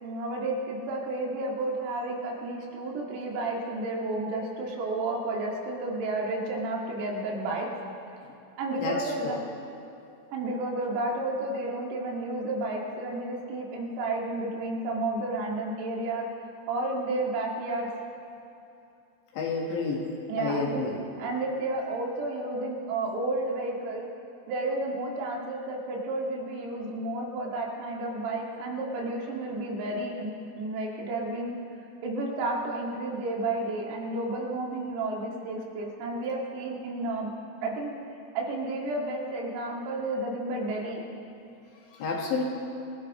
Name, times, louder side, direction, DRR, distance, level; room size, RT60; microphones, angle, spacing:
voice 1, 0.0-7.7 8.6-9.4 10.3-16.3 16.7-17.9 20.3-20.8 21.2-24.1 24.5-31.6 32.0-37.3 37.6-38.0 38.4-41.0, right 2 dB, 90° right, -2 dB, 4.9 m, -31 dB
voice 2, 8.8-9.3 19.3-20.1 20.4-21.0 41.9-42.4, left 4 dB, 65° left, -1 dB, 3.4 m, -30 dB
26.5 x 17.0 x 3.1 m, 2.7 s
omnidirectional pair, 6.0 m